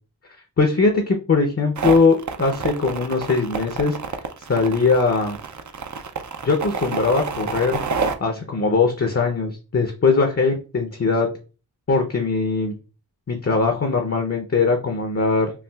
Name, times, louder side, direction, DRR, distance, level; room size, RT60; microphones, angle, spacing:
voice 1, 0.6-4.0 4.5-5.4 6.4-7.8 8.2-11.3 11.9-12.7 13.3-15.5, left 4 dB, 35° left, 4 dB, 0.6 m, -20 dB
sound 1, 1.8-8.1, right 5 dB, 45° right, 0.5 m, -28 dB
5.7 x 2.3 x 2.3 m, 0.34 s
wide cardioid pair, 55°, 40 cm